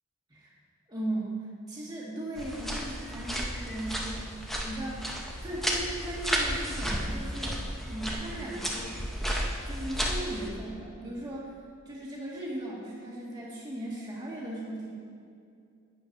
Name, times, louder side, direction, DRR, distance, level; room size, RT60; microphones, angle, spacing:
voice 1, 0.9-1.4 1.7-5.1 5.4-7.6 7.8-8.9 9.6-11.5 11.8-14.9, right 1 dB, 20° right, -5 dB, 1.7 m, -37 dB
sound 1, 2.4-10.5, equal, ahead, 0.7 m, -33 dB
11.5 x 9.0 x 2.6 m, 2.4 s
head